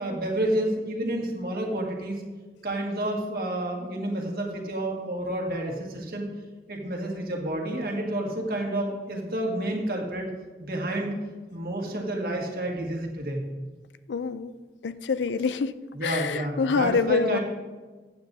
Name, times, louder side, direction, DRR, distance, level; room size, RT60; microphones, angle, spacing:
voice 1, 0.0-2.2 2.6-6.3 6.7-10.3 10.6-11.1 11.5-13.4 15.9-17.4, right 1 dB, 55° right, 0 dB, 1.8 m, -29 dB
voice 2, 14.1-14.5 14.8-15.7 16.0-17.4, left 5 dB, 90° left, 14 dB, 0.4 m, -26 dB
15.0 x 8.8 x 2.7 m, 1.4 s
head